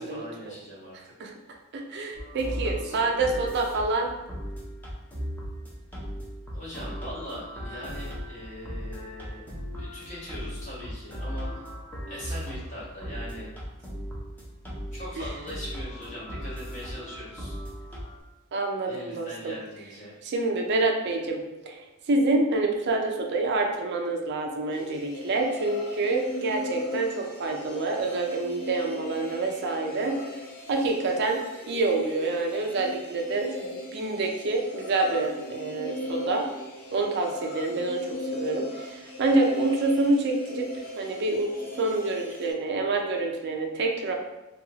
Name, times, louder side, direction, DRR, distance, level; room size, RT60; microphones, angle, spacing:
voice 1, 0.0-1.1 2.4-3.7 6.5-9.4 9.7-11.7 12.1-13.5 14.9-17.6 18.8-20.2, equal, 35° left, -8 dB, 1.1 m, -41 dB
voice 2, 1.7-4.1 18.5-19.5 20.2-21.4 21.7-21.8 22.1-30.2 30.7-36.5 36.9-38.1 38.3-44.1, right 2 dB, 50° right, 2 dB, 0.4 m, -27 dB
sound 1, 2.1-18.2, equal, 10° left, 0.5 m, -37 dB
sound 2, 24.7-42.5, left 1 dB, 85° left, 0.8 m, -38 dB
2.7 x 2.3 x 2.7 m, 1.0 s
head